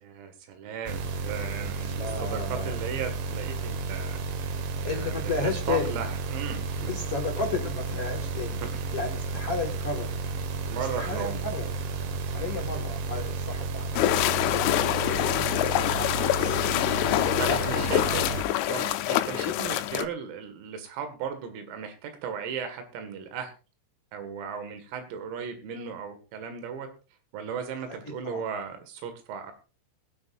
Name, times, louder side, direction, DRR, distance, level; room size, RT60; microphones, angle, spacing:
voice 1, 0.0-4.2 4.8-5.2 5.7-7.0 8.6-8.7 10.7-11.4 17.4-18.4 18.7-23.5 24.1-26.9 27.3-29.5, right 6 dB, 90° right, 7 dB, 4.7 m, -36 dB
sound 1, 0.9-18.4, right 4 dB, 70° right, 3.5 m, -32 dB
voice 2, 1.8-2.8 4.8-6.0 6.8-8.6 8.9-10.2 10.8-11.7 12.3-14.7 15.1-16.7 17.2-18.5 28.2-28.4, left 4 dB, 60° left, 0 dB, 1.5 m, -34 dB
sound 2, 14.0-20.1, left 14 dB, 80° left, 3.1 m, -25 dB
22.5 x 11.0 x 2.6 m, 0.33 s
omnidirectional pair, 5.9 m